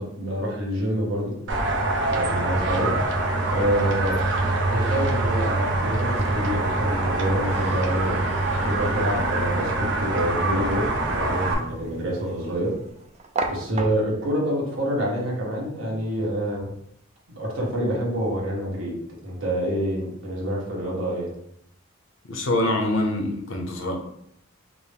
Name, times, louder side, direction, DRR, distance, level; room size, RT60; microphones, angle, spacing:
voice 1, 0.0-1.3 2.1-3.0 3.4-4.2 4.7-8.2 8.5-12.7 13.5-16.7 17.3-19.0 19.2-21.3, equal, 75° right, -3 dB, 1.3 m, -27 dB
sound 1, 1.5-11.5, right 2 dB, 60° right, 0.7 m, -24 dB
sound 2, 5.7-12.1, equal, 40° left, 0.5 m, -40 dB
sound 3, 6.0-14.3, right 3 dB, 35° right, 0.4 m, -37 dB
voice 2, 22.3-23.9, left 1 dB, 70° left, 3 dB, 0.7 m, -24 dB
5.1 x 2.1 x 3.4 m, 0.74 s
head